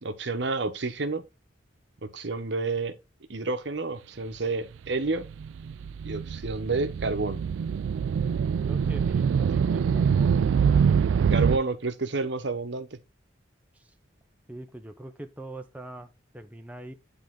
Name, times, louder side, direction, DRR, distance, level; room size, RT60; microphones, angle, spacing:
voice 1, 0.0-1.2 2.1-2.9 3.3-5.3 6.0-7.5 11.3-12.9, right 3 dB, 65° right, 1.0 m, -29 dB
sound 1, 5.1-11.6, right 6 dB, 85° right, 0.3 m, -24 dB
voice 2, 8.7-10.4 13.7-14.0 14.5-16.9, right 1 dB, 10° right, 0.5 m, -43 dB
10.0 x 3.4 x 3.7 m
head